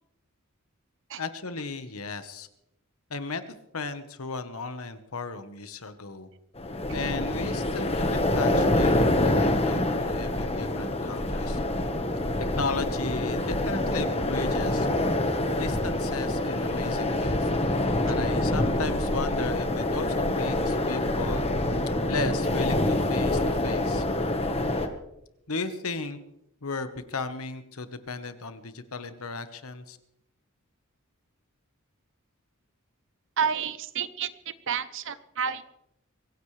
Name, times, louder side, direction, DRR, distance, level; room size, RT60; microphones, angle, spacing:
voice 1, 1.2-2.5 3.1-3.4 3.7-6.3 6.9-11.6 12.6-14.9 15.6-17.5 18.0-21.5 22.1-24.0 25.5-26.2 26.6-30.0, left 3 dB, 85° left, 10 dB, 1.3 m, -35 dB
sound 1, 6.6-24.9, left 1 dB, 30° left, 1.4 m, -26 dB
voice 2, 33.4-34.3 34.7-35.6, right 7 dB, 60° right, 13 dB, 0.8 m, -29 dB
24.5 x 15.5 x 3.3 m, 0.83 s
head